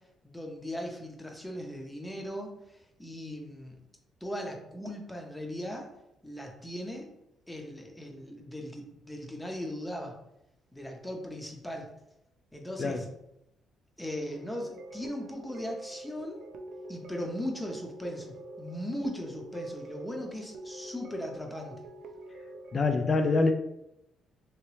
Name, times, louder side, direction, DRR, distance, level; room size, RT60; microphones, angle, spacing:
voice 1, 0.2-3.8 4.2-5.9 6.2-7.1 7.5-10.2 10.7-11.9 12.5-13.1 14.0-16.4 16.9-21.8, equal, 10° left, 2 dB, 0.7 m, -38 dB
sound 1, 14.3-22.8, right 1 dB, 75° right, 0.4 m, -46 dB
voice 2, 22.7-23.5, left 3 dB, 40° left, 7 dB, 0.3 m, -25 dB
2.9 x 2.8 x 3.1 m, 0.82 s
cardioid pair, 90°, 0 cm